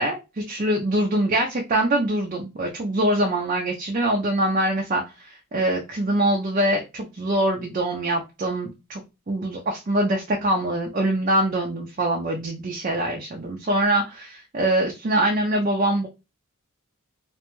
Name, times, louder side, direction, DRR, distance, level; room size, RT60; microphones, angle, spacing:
voice 1, 0.0-9.0 9.3-16.1, right 1 dB, 35° right, 0 dB, 0.4 m, -24 dB
2.6 x 2.1 x 3.0 m, 0.26 s
head